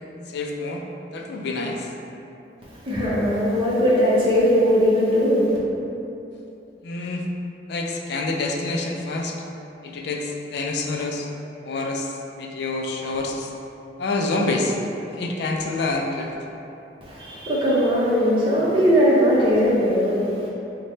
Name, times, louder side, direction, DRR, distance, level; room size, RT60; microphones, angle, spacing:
voice 1, 0.3-0.8 1.1-1.9 6.8-7.3 7.7-9.4 9.8-11.3 11.6-13.5 14.0-14.8 15.1-16.3, left 2 dB, 65° left, 1 dB, 0.4 m, -27 dB
voice 2, 2.8-5.6 17.0-20.3, equal, 30° right, -9 dB, 0.7 m, -19 dB
3.2 x 2.2 x 4.0 m, 2.9 s
head